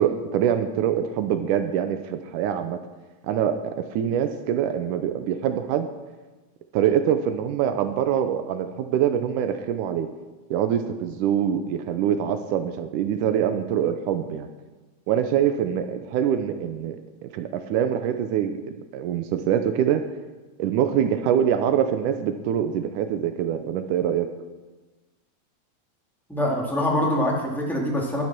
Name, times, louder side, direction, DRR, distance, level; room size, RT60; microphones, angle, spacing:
voice 1, 0.0-2.8 3.2-5.9 6.7-10.1 10.5-14.5 15.1-17.0 17.2-18.5 18.9-20.0 20.6-24.3, right 9 dB, 80° right, 9 dB, 2.3 m, -24 dB
voice 2, 26.3-28.2, left 1 dB, ahead, -3 dB, 1.8 m, -24 dB
11.5 x 11.0 x 6.0 m, 1.2 s
omnidirectional pair, 3.6 m